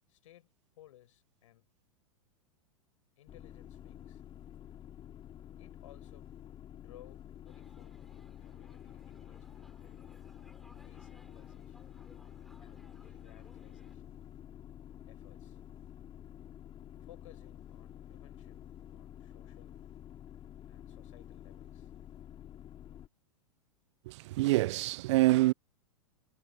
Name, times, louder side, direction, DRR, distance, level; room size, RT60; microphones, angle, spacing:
voice 1, 0.1-0.5 0.8-1.7 3.2-4.2 5.6-6.3 6.7-10.1 10.7-11.9 12.6-14.2 15.1-15.6 17.0-19.8 20.7-21.9, left 14 dB, 65° left, 7.3 m, -60 dB
sound 1, 3.3-23.1, left 10 dB, 30° left, 3.3 m, -50 dB
sound 2, 7.5-14.0, equal, ahead, 7.6 m, -63 dB
voice 2, 24.1-25.5, right 18 dB, 55° right, 0.5 m, -26 dB
hypercardioid pair, 105°, 18 cm